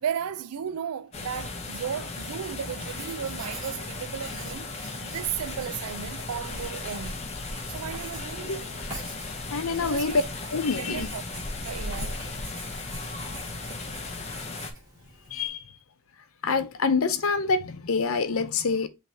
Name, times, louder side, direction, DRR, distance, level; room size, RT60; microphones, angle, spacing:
voice 1, 0.0-7.2 7.7-8.6 9.8-10.2 10.8-11.2 11.6-12.2, right 8 dB, 85° right, 0.4 m, -35 dB
sound 1, 1.1-14.7, left 3 dB, 30° left, 0.7 m, -36 dB
Writing, 2.6-15.5, right 1 dB, 20° right, 2.1 m, -46 dB
voice 2, 9.5-10.2 10.5-11.1 15.3-15.6 16.4-18.9, left 4 dB, 70° left, 0.6 m, -26 dB
5.5 x 3.2 x 2.7 m
head